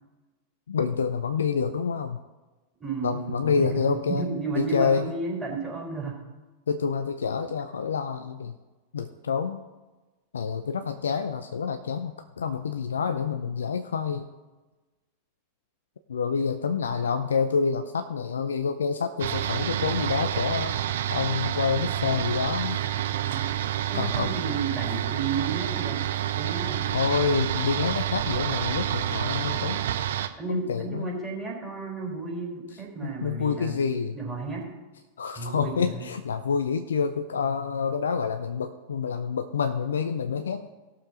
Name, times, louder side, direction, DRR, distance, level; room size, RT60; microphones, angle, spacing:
voice 1, 0.7-2.2 3.0-4.2 4.5-5.1 6.7-8.6 8.9-9.6 10.3-14.3 16.1-20.8 21.1-22.8 23.9-24.3 26.9-29.8 30.5-31.2 33.0-34.1 35.2-40.7, left 6 dB, 70° left, 8 dB, 0.5 m, -27 dB
voice 2, 2.8-6.2 22.9-23.5 23.9-26.1 26.3-26.8 30.4-33.8 34.1-34.7 35.4-36.1, right 4 dB, 10° right, -3 dB, 3.9 m, -33 dB
sound 1, 19.2-30.3, right 11 dB, 60° right, 0.6 m, -28 dB
17.5 x 6.8 x 3.8 m, 1.2 s
figure-of-eight pair, 90°, 0 cm